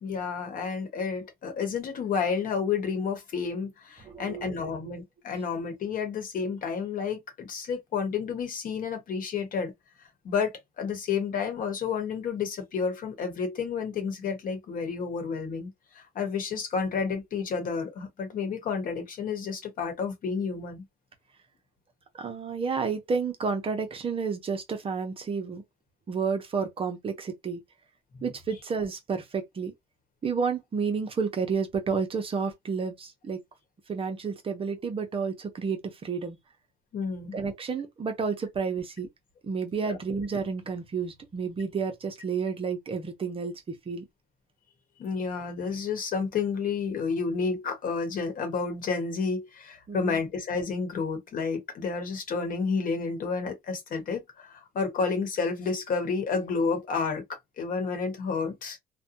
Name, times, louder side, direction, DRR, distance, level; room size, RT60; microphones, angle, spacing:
voice 1, 0.0-9.7 10.2-20.8 36.9-37.4 39.9-40.0 45.0-58.8, left 5 dB, 55° left, 1.1 m, -30 dB
voice 2, 4.0-5.0 22.2-25.6 26.1-27.6 28.2-29.7 30.2-33.4 33.9-36.4 37.3-39.1 39.4-43.5 43.9-44.1 49.9-50.2, right 5 dB, 35° right, 0.7 m, -31 dB
2.5 x 2.2 x 2.7 m
cardioid pair, 110°, 17 cm